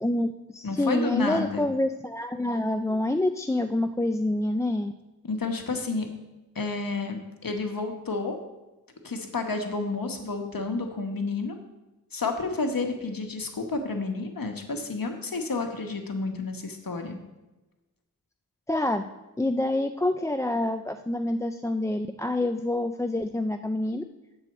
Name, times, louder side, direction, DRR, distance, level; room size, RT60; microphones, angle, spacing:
voice 1, 0.0-4.9 18.7-19.1 19.4-24.0, left 1 dB, 10° left, 7 dB, 0.3 m, -27 dB
voice 2, 0.6-1.7 5.2-6.1 6.5-8.4 9.0-11.6 12.1-17.2, left 3 dB, 65° left, 4 dB, 1.2 m, -30 dB
7.7 x 4.5 x 7.1 m, 1.1 s
wide cardioid pair, 50°, 37 cm